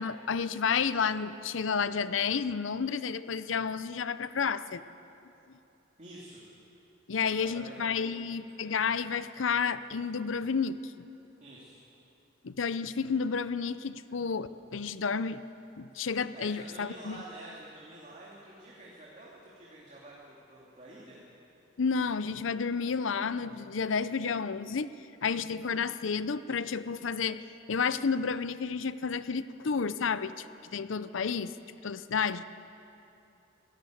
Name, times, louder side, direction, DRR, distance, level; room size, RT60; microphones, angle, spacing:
voice 1, 0.0-4.8 7.1-10.9 12.4-15.4 15.8-17.2 21.8-27.4 27.7-30.5 30.7-31.5 31.8-32.4, left 5 dB, 80° left, 14 dB, 0.6 m, -31 dB
voice 2, 6.0-6.4 7.2-8.2 11.4-11.8 16.3-21.2, right 1 dB, 35° right, -5 dB, 3.1 m, -48 dB
25.5 x 17.0 x 7.8 m, 2.8 s
head